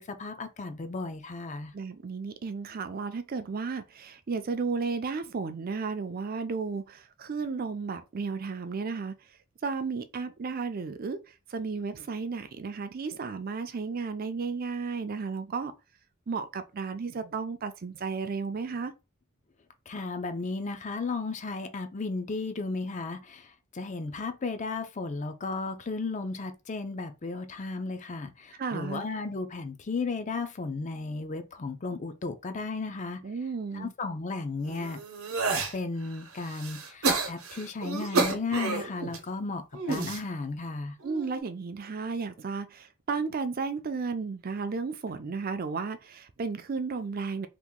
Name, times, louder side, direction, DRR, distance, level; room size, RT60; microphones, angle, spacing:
voice 1, 0.0-1.7 19.9-33.2 33.7-35.0 35.7-39.6 39.9-40.9, left 3 dB, 35° left, 0.4 m, -34 dB
voice 2, 1.7-9.1 9.6-11.2 11.5-15.7 16.3-18.9 28.5-29.0 33.2-33.9 41.0-47.5, right 4 dB, 45° right, 0.4 m, -33 dB
sound 1, 34.7-35.7 36.3-39.2 39.7-40.2 41.0-41.4, right 3 dB, 85° right, 0.9 m, -30 dB
2.9 x 2.5 x 3.6 m
head